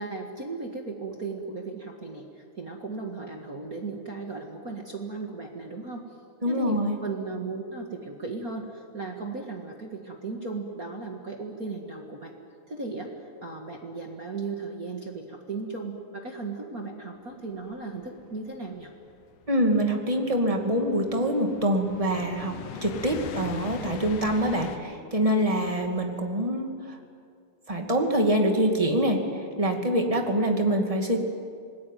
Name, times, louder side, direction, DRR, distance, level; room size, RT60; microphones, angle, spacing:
voice 1, 0.0-6.1 6.4-12.3 12.7-13.1 13.4-18.9, right 3 dB, 35° right, 2 dB, 1.7 m, -36 dB
voice 2, 6.4-7.0 19.5-22.6 22.8-27.0 27.7-29.2 29.6-31.2, right 1 dB, 10° right, 3 dB, 1.9 m, -25 dB
sound 1, 17.7-24.8, left 8 dB, 85° left, 3.0 m, -42 dB
26.5 x 20.0 x 9.3 m, 2.3 s
omnidirectional pair, 3.7 m